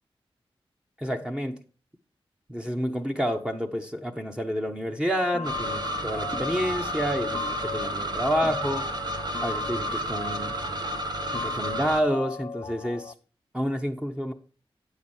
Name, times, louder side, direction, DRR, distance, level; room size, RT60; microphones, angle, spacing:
voice 1, 1.0-1.6 2.5-8.9 9.4-10.5 11.3-13.1 13.5-14.3, equal, 10° right, 1.0 m, -29 dB
sound 1, 5.1-13.1, left 5 dB, 45° left, 0.4 m, -37 dB
sound 2, 5.4-12.0, right 1 dB, 45° right, 1.2 m, -31 dB
9.3 x 7.0 x 4.5 m
wide cardioid pair, 95°, 10 cm